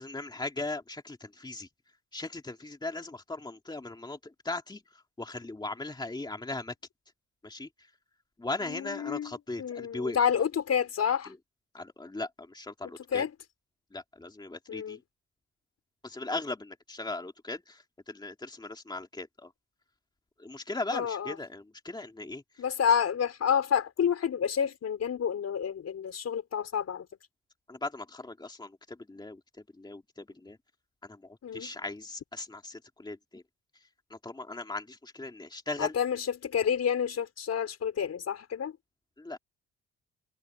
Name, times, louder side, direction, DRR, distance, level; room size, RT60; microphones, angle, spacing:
voice 1, 0.0-1.7 2.1-6.7 7.4-7.9 8.4-10.2 11.2-11.4 11.7-13.3 13.9-15.0 16.0-19.5 20.4-22.6 27.7-29.4 29.7-30.6 31.0-33.4 34.1-35.9 39.2-39.4, left 2 dB, 15° left, 2.6 m, -38 dB
voice 2, 8.7-9.3 9.6-11.3 13.1-13.3 14.7-15.0 20.9-21.3 22.6-27.0 31.4-31.7 35.8-38.7, left 8 dB, 55° left, 4.8 m, -29 dB
cardioid pair, 90°, 30 cm